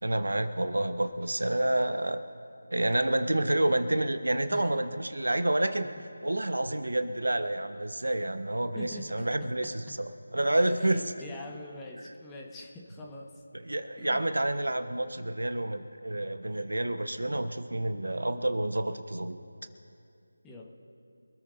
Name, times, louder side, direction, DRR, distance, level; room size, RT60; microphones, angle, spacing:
voice 1, 0.0-2.2 2.7-5.9 6.2-11.0 13.6-19.4, right 1 dB, 75° right, 9 dB, 1.2 m, -29 dB
voice 2, 4.5-4.8 5.8-5.9 8.7-9.3 10.7-13.3 14.0-14.2 20.4-20.7, left 1 dB, 10° left, -1 dB, 1.4 m, -43 dB
26.0 x 14.0 x 2.7 m, 2.5 s
figure-of-eight pair, 165°, 0 cm